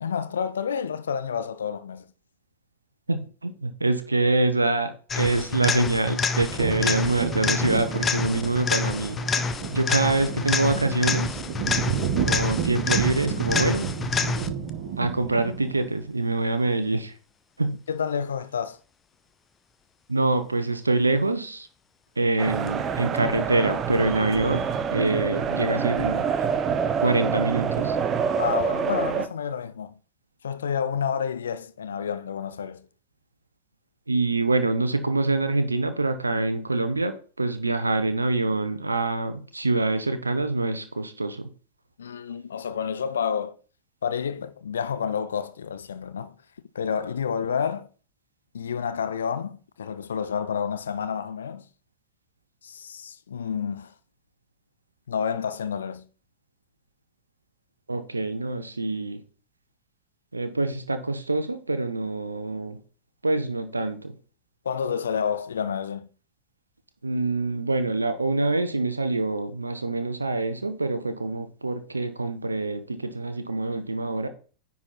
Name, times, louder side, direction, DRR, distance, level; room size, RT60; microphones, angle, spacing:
voice 1, 0.0-2.1 17.9-18.8 28.4-29.9 30.4-32.9 42.0-43.6 44.0-46.4 46.7-47.9 48.5-51.7 52.6-53.9 55.1-56.1 64.6-66.1, left 7 dB, 65° left, 0.6 m, -29 dB
voice 2, 3.1-9.2 9.7-11.4 12.2-13.9 15.0-17.1 17.6-17.8 20.1-21.7 22.2-24.6 24.9-26.2 27.0-28.0 34.1-41.5 57.9-59.2 60.3-62.8 63.2-64.1 67.0-74.3, right 2 dB, 80° right, 0.7 m, -25 dB
sound 1, 5.1-14.7 22.7-22.8, left 4 dB, 20° left, 0.6 m, -28 dB
sound 2, 5.8-16.0, right 6 dB, 45° right, 1.8 m, -31 dB
sound 3, 22.4-29.3, right 6 dB, 25° right, 0.7 m, -26 dB
9.7 x 4.1 x 4.2 m
figure-of-eight pair, 90°, 0 cm